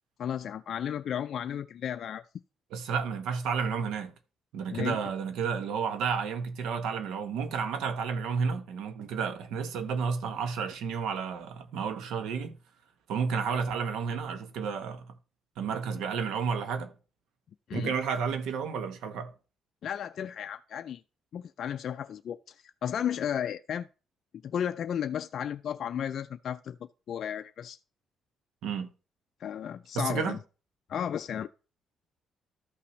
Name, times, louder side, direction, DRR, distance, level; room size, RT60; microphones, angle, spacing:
voice 1, 0.2-2.3 2.8-2.9 4.7-5.0 17.7-17.9 19.8-21.0 21.3-23.9 24.4-26.8 27.1-27.8 29.4-30.4 30.9-31.5, left 9 dB, 65° left, 0.3 m, -34 dB
voice 2, 2.7-4.1 4.5-12.6 13.1-15.1 15.6-16.9 17.7-19.3 28.6-28.9 29.9-30.4, right 6 dB, 85° right, 1.0 m, -31 dB
13.0 x 5.8 x 3.1 m
cardioid pair, 90°, 0 cm